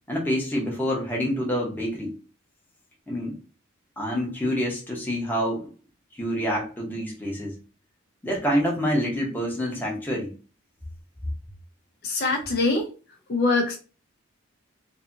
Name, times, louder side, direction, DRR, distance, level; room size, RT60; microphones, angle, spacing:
voice 1, 0.1-2.2 3.1-3.4 4.0-5.7 6.2-7.6 8.2-10.3, equal, 10° left, -2 dB, 0.8 m, -27 dB
voice 2, 12.0-12.9 13.3-13.8, left 3 dB, 45° left, 1 dB, 0.5 m, -23 dB
2.7 x 2.7 x 2.5 m, 0.34 s
head